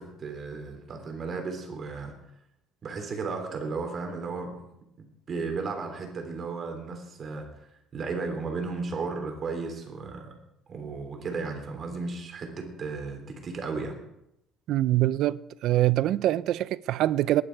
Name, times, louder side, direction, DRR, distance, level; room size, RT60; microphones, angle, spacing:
voice 1, 0.0-2.1 2.8-4.6 5.0-7.5 7.9-10.3 10.7-14.0, right 4 dB, 35° right, 3.4 m, -34 dB
voice 2, 14.7-17.4, right 14 dB, 60° right, 0.5 m, -24 dB
19.5 x 11.5 x 4.7 m
cardioid pair, 135°, 0 cm